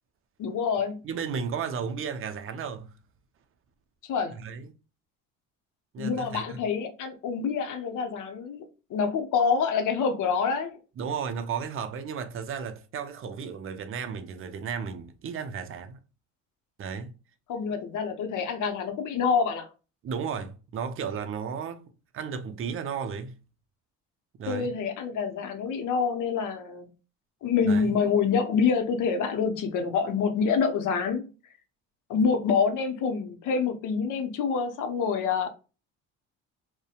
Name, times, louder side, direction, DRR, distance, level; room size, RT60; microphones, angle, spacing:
voice 1, 0.4-1.0 4.0-4.4 6.0-8.6 8.9-10.8 17.5-19.7 24.5-26.9 27.4-31.3 32.1-35.5, left 5 dB, 60° left, 0.7 m, -26 dB
voice 2, 1.0-3.0 4.3-4.7 5.9-6.6 11.0-16.0 16.8-17.1 20.0-21.9 22.1-23.4 24.4-24.8 27.7-27.9, right 6 dB, 40° right, 0.5 m, -34 dB
2.6 x 2.1 x 2.4 m
supercardioid pair, 70°, 35 cm